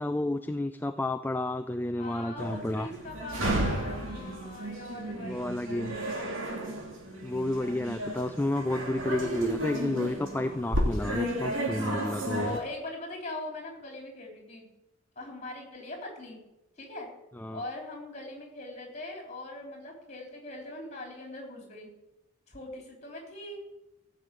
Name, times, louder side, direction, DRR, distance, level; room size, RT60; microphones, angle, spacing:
voice 1, 0.0-2.9 5.3-5.9 7.2-12.6 17.4-17.6, left 1 dB, 10° left, 6 dB, 0.3 m, -31 dB
voice 2, 2.0-6.8 12.2-14.7 15.1-16.4 16.8-17.1 17.5-21.9 22.5-23.6, left 2 dB, 30° left, 1 dB, 3.5 m, -41 dB
sound 1, 2.4-12.6, right 1 dB, 65° right, 2.8 m, -33 dB
14.5 x 6.5 x 8.2 m, 0.94 s
head